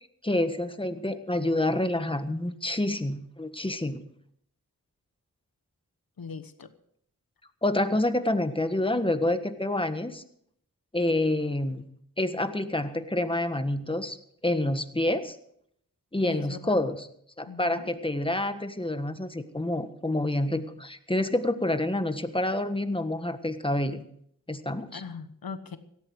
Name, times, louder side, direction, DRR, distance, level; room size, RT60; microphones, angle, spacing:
voice 1, 0.2-4.0 7.6-10.2 10.9-11.8 12.2-14.2 14.4-15.4 16.1-17.1 17.4-24.0 24.5-25.0, left 1 dB, 15° left, 9 dB, 1.5 m, -28 dB
voice 2, 6.2-6.7 16.2-16.9 17.4-17.9 24.9-25.8, left 5 dB, 80° left, 10 dB, 1.3 m, -40 dB
17.5 x 13.5 x 4.8 m, 0.69 s
wide cardioid pair, 60°, 35 cm